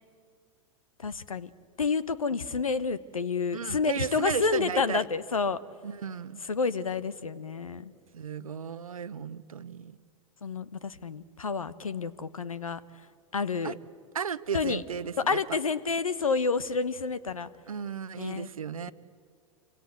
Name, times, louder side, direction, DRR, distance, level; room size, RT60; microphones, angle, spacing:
voice 1, 1.0-1.5 1.8-5.6 6.5-7.9 10.4-12.8 13.3-13.8 14.5-14.8 15.2-17.5 18.2-18.5, left 4 dB, 90° left, 18 dB, 1.0 m, -29 dB
voice 2, 3.5-5.1 5.8-6.4 8.1-10.0 13.6-13.7 14.1-15.6 17.7-18.9, right 7 dB, 85° right, 15 dB, 0.8 m, -35 dB
27.0 x 25.0 x 8.4 m, 2.1 s
hypercardioid pair, 90°, 17 cm